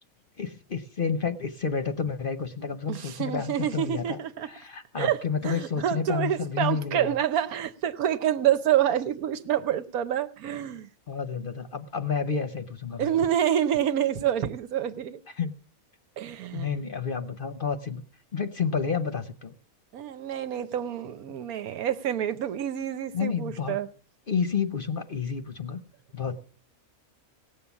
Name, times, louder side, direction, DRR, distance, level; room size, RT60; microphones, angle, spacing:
voice 1, 0.4-4.2 4.5-7.1 11.1-13.1 15.4-15.5 16.5-18.0 18.3-19.5 23.1-23.8 24.3-25.8 26.1-26.4, left 6 dB, 45° left, 9 dB, 0.8 m, -30 dB
voice 2, 2.9-4.5 4.9-5.2 5.4-10.9 13.0-15.2 16.2-16.7 19.9-23.9, right 10 dB, 80° right, 11 dB, 1.3 m, -27 dB
17.5 x 7.6 x 7.0 m, 0.43 s
omnidirectional pair, 1.5 m